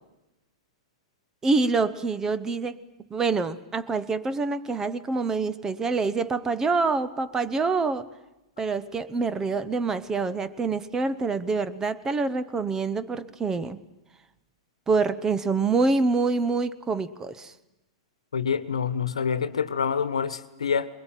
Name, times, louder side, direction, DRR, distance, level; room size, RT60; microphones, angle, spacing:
voice 1, 1.4-2.8 3.1-8.1 8.6-13.8 14.9-17.5, right 4 dB, 15° right, 15 dB, 0.9 m, -26 dB
voice 2, 18.3-20.9, left 6 dB, 90° left, 13 dB, 1.2 m, -26 dB
22.0 x 21.0 x 9.1 m, 0.96 s
hypercardioid pair, 120°, 3 cm